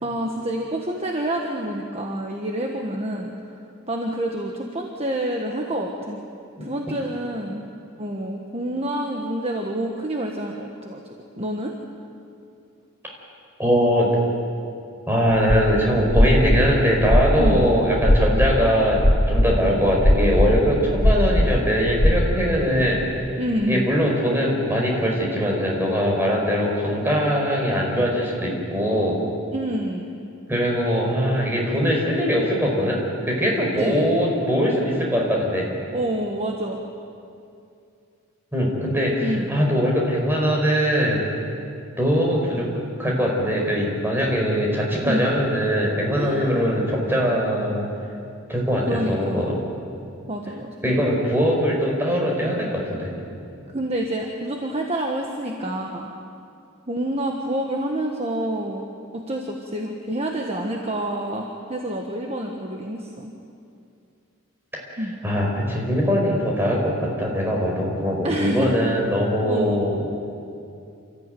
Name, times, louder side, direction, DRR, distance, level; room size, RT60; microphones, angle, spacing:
voice 1, 0.0-3.6 3.9-6.2 6.6-7.6 8.0-11.0 11.4-11.7 17.3-17.7 23.4-23.8 29.5-30.1 33.8-34.1 35.9-36.8 39.2-39.5 45.0-45.3 46.1-46.5 48.8-49.4 50.3-50.7 53.7-56.1 56.9-58.8 59.1-63.3 65.0-65.1 68.2-68.8 69.5-69.7, right 1 dB, 30° right, 1 dB, 1.4 m, -28 dB
voice 2, 13.6-14.1 15.1-19.0 19.3-23.0 23.7-29.2 30.5-35.6 38.5-41.2 42.0-42.7 43.0-47.8 48.5-49.5 50.8-53.1 65.2-70.1, equal, 10° right, -2 dB, 4.9 m, -21 dB
sound 1, 15.3-15.7 16.1-17.6 18.0-18.5 19.0-19.5 20.0-20.7 21.0-21.6 21.9-22.1, left 1 dB, 55° left, 2.3 m, -17 dB
28.0 x 14.5 x 9.3 m, 2.5 s
head